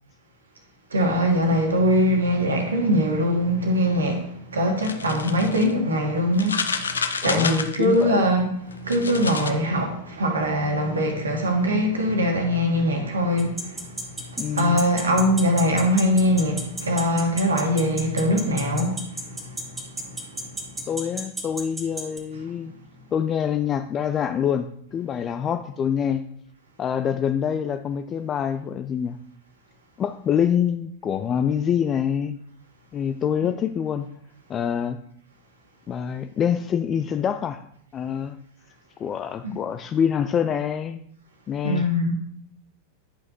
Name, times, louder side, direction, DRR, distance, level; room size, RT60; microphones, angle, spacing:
voice 1, 0.9-19.6 19.9-20.4 39.4-39.5 41.6-42.1, equal, 75° right, 1.7 m, -22 dB
sound 1, 4.8-5.7 6.3-8.0 8.7-9.5, left 5 dB, 70° left, 0.6 m, -29 dB
voice 2, 7.2-8.3 14.4-14.9 20.9-22.7 23.1-26.3 26.8-29.2 30.0-32.4 32.9-34.1 34.5-35.0 35.9-37.6 37.9-38.4 39.0-41.0 41.5-41.9, left 8 dB, 25° left, 0.4 m, -25 dB
sound 2, 13.4-22.2, right 1 dB, 10° right, 1.6 m, -31 dB
11.0 x 5.7 x 3.1 m
figure-of-eight pair, 90°, 0 cm